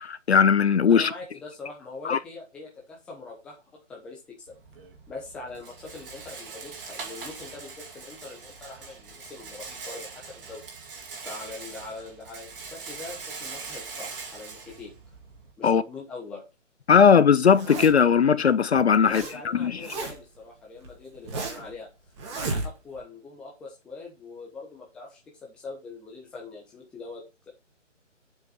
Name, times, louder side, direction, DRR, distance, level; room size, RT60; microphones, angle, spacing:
voice 1, 0.0-1.1 2.1-2.2 15.6-15.8 16.9-19.8, left 6 dB, 55° left, 0.6 m, -19 dB
voice 2, 0.9-4.5 5.1-10.6 11.2-14.9 15.6-16.4 19.0-21.9 22.3-27.5, left 3 dB, 5° left, 0.9 m, -42 dB
Rattle, 4.5-15.5, right 4 dB, 45° right, 2.7 m, -42 dB
Zipper (clothing), 17.4-18.1 18.7-19.3 19.6-20.4 20.8-21.7 22.2-23.0, right 3 dB, 20° right, 2.1 m, -33 dB
7.5 x 5.9 x 3.9 m
figure-of-eight pair, 155°, 38 cm